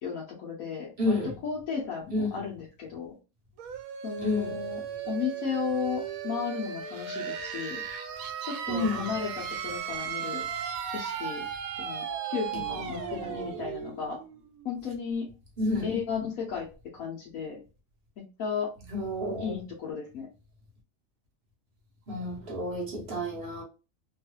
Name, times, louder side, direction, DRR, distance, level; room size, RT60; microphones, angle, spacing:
voice 1, 0.0-3.1 4.0-7.8 8.5-10.5 10.9-11.5 11.8-14.2 14.6-15.3 15.8-16.7 16.9-17.6 18.2-18.7 19.4-20.3, left 6 dB, 85° left, 1.3 m, -34 dB
voice 2, 1.0-1.3 2.1-2.5 4.2-4.6 8.7-9.1 12.7-13.7 15.6-16.0 18.9-19.6 22.1-23.6, left 1 dB, 50° right, 1.0 m, -31 dB
sound 1, 3.6-15.1, right 8 dB, 90° right, 1.0 m, -36 dB
3.1 x 2.4 x 2.8 m
omnidirectional pair, 1.4 m